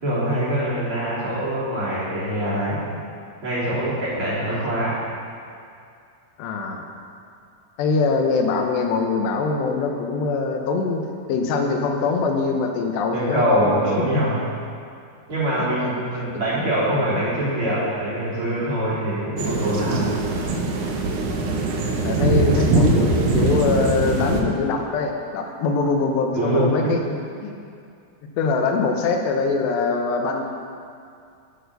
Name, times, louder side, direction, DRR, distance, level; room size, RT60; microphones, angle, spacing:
voice 1, 0.0-2.8 3.4-5.0 13.1-14.3 15.3-20.0 26.3-26.9, right 1 dB, 35° right, -10 dB, 4.0 m, -23 dB
voice 2, 6.4-6.9 7.8-13.8 14.1-14.3 15.6-16.0 21.3-21.7 22.0-27.0 27.4-27.6 28.2-30.4, left 4 dB, 90° left, 3 dB, 3.3 m, -23 dB
sound 1, 19.4-24.4, right 2 dB, 65° right, 2.0 m, -21 dB
11.5 x 9.4 x 6.8 m, 2.4 s
omnidirectional pair, 4.8 m